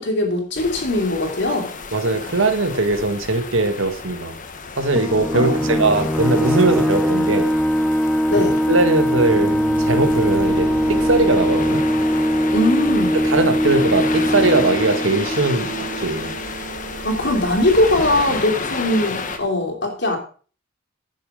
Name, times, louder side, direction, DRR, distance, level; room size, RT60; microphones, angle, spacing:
voice 1, 0.0-1.7 5.3-5.8 8.3-8.6 12.5-13.2 17.0-20.2, left 1 dB, 60° left, 1 dB, 3.0 m, -20 dB
sound 1, 0.6-19.4, left 4 dB, 40° left, 1.3 m, -32 dB
voice 2, 1.9-4.3 4.8-7.6 8.7-11.8 13.2-16.3, right 2 dB, 90° right, 8 dB, 1.7 m, -20 dB
sound 2, 5.0-16.2, equal, 5° left, 0.6 m, -21 dB
sound 3, 9.2-12.7 15.1-19.5, right 3 dB, 65° right, 0.8 m, -34 dB
11.0 x 8.2 x 5.0 m, 0.40 s
head